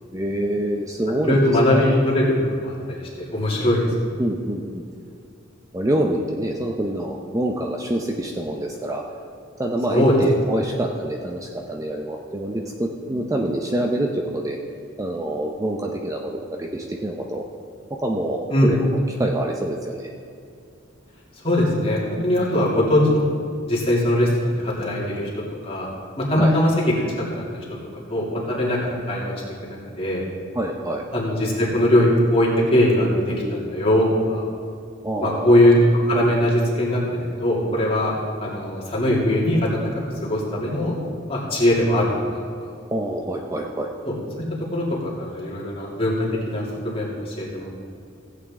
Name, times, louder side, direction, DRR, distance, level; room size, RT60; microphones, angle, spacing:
voice 1, 0.1-2.0 4.2-4.8 5.7-9.0 9.6-14.7 15.0-17.4 18.0-18.9 19.2-20.1 26.4-26.6 30.5-31.0 35.0-35.6 42.9-43.9, right 1 dB, 15° right, 1 dB, 0.6 m, -26 dB
voice 2, 1.3-3.0 3.3-3.9 9.9-10.1 10.5-10.6 18.5-18.8 21.4-23.3 23.7-25.3 25.6-25.9 26.2-26.7 27.3-27.4 28.1-29.3 29.6-30.2 31.1-34.4 35.2-35.7 36.0-37.0 37.4-38.1 38.4-39.7 40.2-41.0 41.3-42.4 44.1-44.4 44.7-47.7, left 1 dB, 30° left, -5 dB, 2.6 m, -20 dB
16.0 x 8.4 x 3.7 m, 2.4 s
head